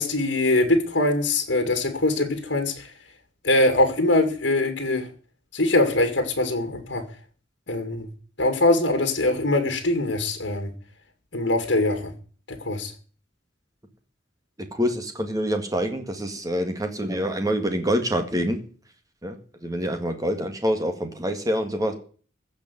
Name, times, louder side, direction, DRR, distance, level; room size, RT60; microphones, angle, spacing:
voice 1, 0.0-2.9 3.4-5.1 5.5-7.0 7.7-8.1 8.4-10.7 11.3-12.1 12.5-12.9, left 2 dB, 65° left, 6 dB, 2.3 m, -22 dB
voice 2, 14.6-18.6 19.2-21.9, equal, 20° right, 6 dB, 1.9 m, -26 dB
15.5 x 5.3 x 9.4 m, 0.42 s
head